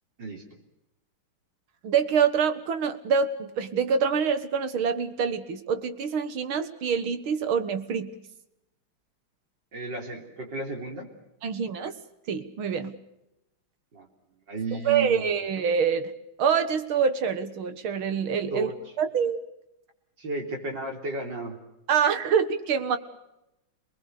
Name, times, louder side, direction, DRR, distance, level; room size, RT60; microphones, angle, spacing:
voice 1, 1.8-8.1 11.4-11.9 12.3-13.0 14.7-16.1 16.4-18.7 19.0-19.4 21.9-23.0, right 6 dB, 80° right, 10 dB, 2.3 m, -25 dB
voice 2, 9.7-11.1 13.9-14.1 14.5-15.3 18.5-18.7 20.2-21.6, right 2 dB, 60° right, 3 dB, 4.4 m, -33 dB
28.0 x 20.0 x 6.7 m, 0.89 s
omnidirectional pair, 2.2 m